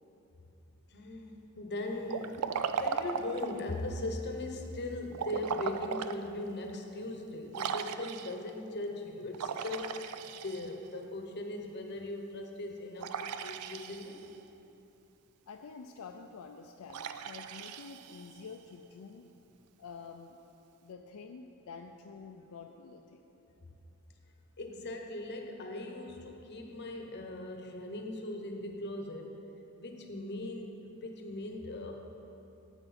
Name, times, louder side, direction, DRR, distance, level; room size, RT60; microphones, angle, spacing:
voice 1, 0.9-2.4 2.7-9.9 10.2-14.2 24.6-29.4 29.8-32.0, left 2 dB, 50° left, 3 dB, 0.9 m, -39 dB
Liquid, 2.1-3.7 5.1-6.2 6.7-6.8 7.5-8.5 9.3-11.0 13.0-14.4 16.9-18.5, right 6 dB, 85° right, 0.4 m, -37 dB
voice 2, 15.5-19.3 19.8-20.4 20.8-23.2, left 5 dB, 75° left, 3 dB, 0.4 m, -48 dB
9.3 x 8.0 x 4.2 m, 3.0 s
head